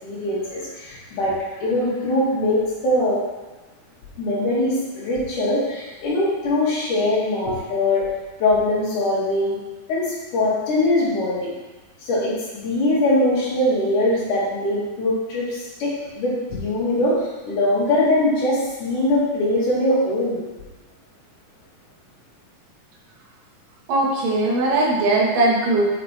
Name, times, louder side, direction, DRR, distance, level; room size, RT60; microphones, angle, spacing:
voice 1, 0.0-3.2 4.2-8.0 8.4-9.6 9.9-11.5 12.0-20.5, left 1 dB, 75° left, -8 dB, 3.4 m, -22 dB
voice 2, 23.9-26.0, right 2 dB, 85° right, -4 dB, 2.9 m, -19 dB
7.4 x 5.5 x 3.2 m, 1.2 s
omnidirectional pair, 3.8 m